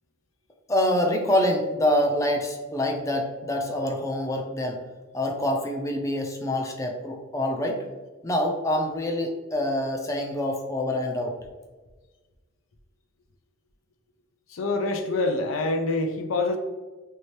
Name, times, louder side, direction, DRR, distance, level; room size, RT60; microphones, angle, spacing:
voice 1, 0.7-4.8 5.1-7.8 8.2-11.3, left 1 dB, 15° left, 2 dB, 0.4 m, -26 dB
voice 2, 14.5-16.6, left 2 dB, 90° left, 6 dB, 0.5 m, -26 dB
3.4 x 2.8 x 3.1 m, 1.3 s
head